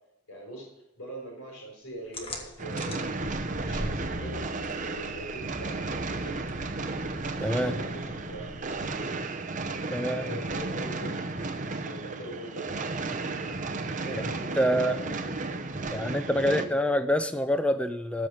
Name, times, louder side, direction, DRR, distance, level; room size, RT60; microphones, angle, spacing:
voice 1, 0.3-0.7 1.0-3.0 3.6-6.6 7.5-9.2 10.0-12.9 14.0-17.0, right 1 dB, 75° left, -2 dB, 4.3 m, -43 dB
sound 1, 2.1-9.3, left 1 dB, 25° left, 1.5 m, -41 dB
sound 2, 2.6-16.7, right 3 dB, 35° right, 0.8 m, -34 dB
voice 2, 7.4-7.7 9.9-10.3 14.0-14.2 14.6-15.1 15.9-18.3, equal, 5° left, 10 dB, 0.5 m, -26 dB
13.5 x 5.8 x 4.9 m, 0.94 s
head